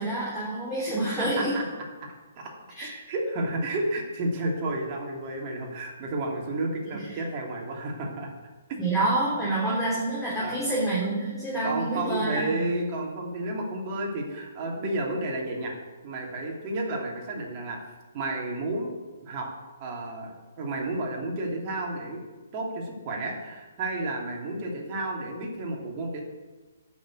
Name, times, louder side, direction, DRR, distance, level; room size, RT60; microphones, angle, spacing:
voice 1, 0.0-1.5 2.7-2.9 6.9-7.2 8.8-12.6, right 2 dB, 5° left, -9 dB, 3.5 m, -28 dB
voice 2, 1.2-2.5 2.8-8.3 9.4-9.5 10.4-10.6 11.6-15.7 16.0-17.8 18.1-18.9 19.2-19.5 19.8-22.2 22.5-26.2, right 2 dB, 30° right, 0 dB, 2.8 m, -31 dB
12.0 x 6.2 x 8.3 m, 1.2 s
figure-of-eight pair, 130°, 0 cm